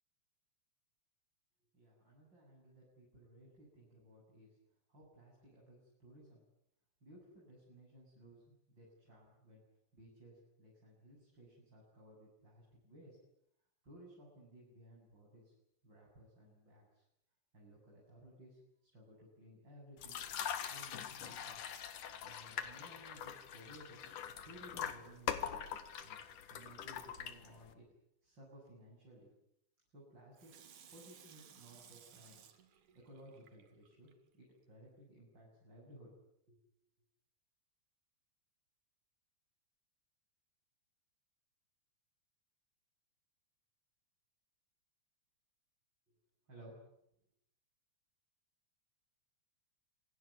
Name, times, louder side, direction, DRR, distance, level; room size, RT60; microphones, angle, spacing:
voice 1, 1.7-4.6 4.9-6.4 7.0-9.6 9.9-13.2 13.8-15.5 15.8-17.0 17.5-20.2 20.7-21.7 22.2-26.2 26.5-27.9 28.2-29.3 29.9-30.5 30.9-32.5 33.0-36.1 36.5-36.6 46.1-46.2 46.5-46.8, right 1 dB, 35° right, -3 dB, 8.8 m, -59 dB
pouring water to coffee maker, 20.0-27.7, left 9 dB, 85° left, 3.3 m, -43 dB
Water tap faucet / Sink (filling or washing), 30.4-34.1 34.6-34.7, right 8 dB, 80° right, 3.6 m, -60 dB
27.0 x 22.5 x 9.6 m, 0.76 s
omnidirectional pair, 3.5 m